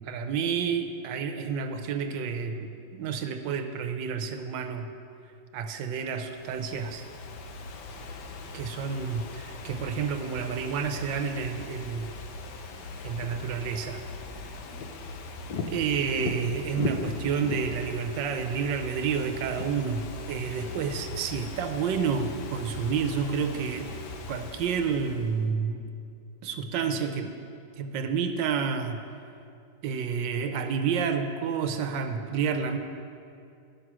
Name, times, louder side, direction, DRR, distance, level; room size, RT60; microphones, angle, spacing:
voice 1, 0.0-4.9 5.5-7.1 8.5-12.1 13.0-14.0 15.7-23.9 24.3-25.8 26.4-27.3 27.8-29.0 29.8-32.8, right 6 dB, 85° right, 7 dB, 1.4 m, -30 dB
Ocean / Fireworks, 6.1-25.4, left 3 dB, 75° left, 1.3 m, -39 dB
11.5 x 6.2 x 6.0 m, 2.5 s
omnidirectional pair, 1.9 m